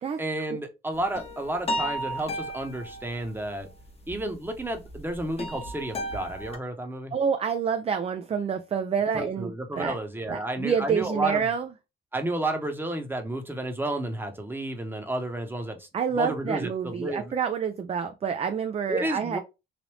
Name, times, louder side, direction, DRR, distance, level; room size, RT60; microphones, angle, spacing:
voice 1, 0.2-3.7 4.1-7.1 9.1-11.5 12.1-17.3 18.9-19.4, right 1 dB, 10° right, 0.9 m, -31 dB
sound 1, 0.9-6.6, equal, 30° left, 0.9 m, -34 dB
voice 2, 7.1-9.9 10.3-11.7 15.9-19.4, right 6 dB, 30° right, 0.4 m, -28 dB
3.3 x 2.5 x 3.0 m
cardioid pair, 90°, 20 cm